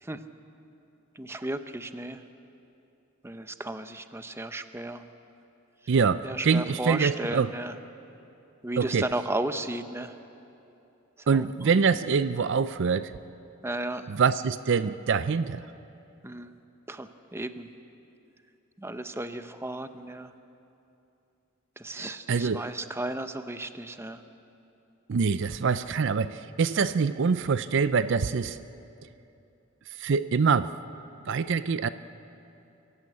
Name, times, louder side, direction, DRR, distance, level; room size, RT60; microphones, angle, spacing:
voice 1, 1.2-2.2 3.2-5.0 6.2-7.7 8.6-10.1 11.2-11.5 13.6-14.0 16.2-16.6 16.9-17.7 18.8-20.3 21.8-24.2, right 1 dB, 10° right, 9 dB, 0.7 m, -34 dB
voice 2, 5.9-7.5 8.8-9.1 11.3-13.1 14.1-15.7 21.9-22.6 25.1-28.6 30.0-30.7 31.2-31.9, right 5 dB, 60° right, 14 dB, 0.5 m, -25 dB
24.5 x 15.0 x 8.5 m, 2.8 s
head